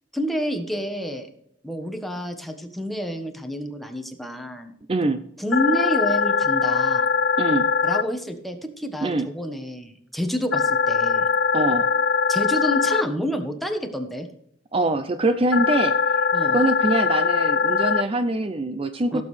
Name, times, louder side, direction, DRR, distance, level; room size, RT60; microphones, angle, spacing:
voice 1, 0.1-1.3 1.6-4.7 5.4-7.1 7.8-11.3 12.3-14.3 16.3-16.6 19.1-19.2, equal, ahead, 4 dB, 1.3 m, -28 dB
voice 2, 4.9-5.2 7.4-7.7 9.0-9.3 11.5-11.9 14.7-19.2, right 2 dB, 35° right, 9 dB, 0.5 m, -24 dB
sound 1, 5.5-8.0 10.5-13.0 15.5-18.0, left 5 dB, 70° left, 0.5 m, -21 dB
16.5 x 7.4 x 3.3 m, 0.74 s
head